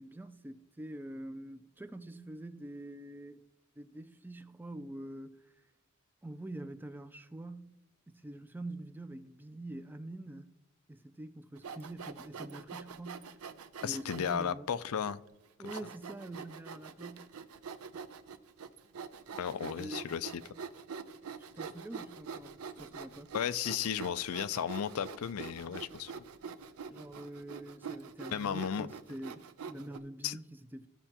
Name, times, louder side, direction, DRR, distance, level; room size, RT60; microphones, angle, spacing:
voice 1, 0.0-3.5 3.8-5.4 6.2-7.8 8.1-10.5 10.9-13.3 13.8-14.7 15.6-17.3 19.6-20.1 21.4-23.3 26.9-30.9, right 1 dB, 10° right, 0.3 m, -45 dB
Sawing, 11.6-14.4 15.0-15.1 15.6-30.0, right 6 dB, 85° right, 0.5 m, -45 dB
voice 2, 13.8-15.2 19.4-20.4 23.3-26.1 28.3-28.9 30.2-30.4, left 8 dB, 75° left, 0.4 m, -34 dB
15.0 x 5.4 x 2.9 m
head